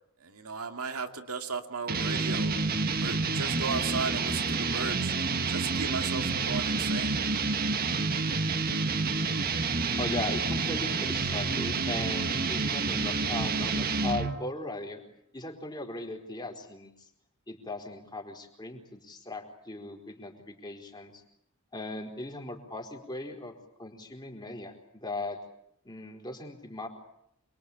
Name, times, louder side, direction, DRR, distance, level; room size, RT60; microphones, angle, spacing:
voice 1, 0.2-2.5 3.0-5.1 5.5-7.2, right 4 dB, 80° right, 5 dB, 2.4 m, -36 dB
sound 1, 1.9-14.4, right 4 dB, 45° right, 1.5 m, -29 dB
voice 2, 10.0-15.0 15.3-17.1 17.5-21.2 21.7-23.5 23.8-25.4 25.8-26.9, left 2 dB, 20° left, 3 dB, 4.4 m, -38 dB
27.5 x 22.5 x 8.6 m, 0.78 s
head